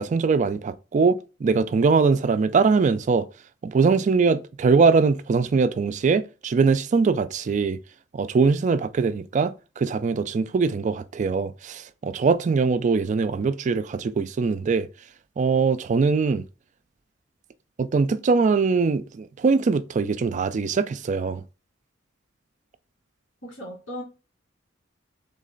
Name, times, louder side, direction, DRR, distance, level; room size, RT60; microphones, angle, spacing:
voice 1, 0.0-3.3 3.6-7.8 8.1-14.9 15.4-16.5 17.8-21.4, right 4 dB, 40° right, 0.3 m, -22 dB
voice 2, 23.4-24.0, equal, 75° left, 2.6 m, -36 dB
3.7 x 3.2 x 3.8 m
head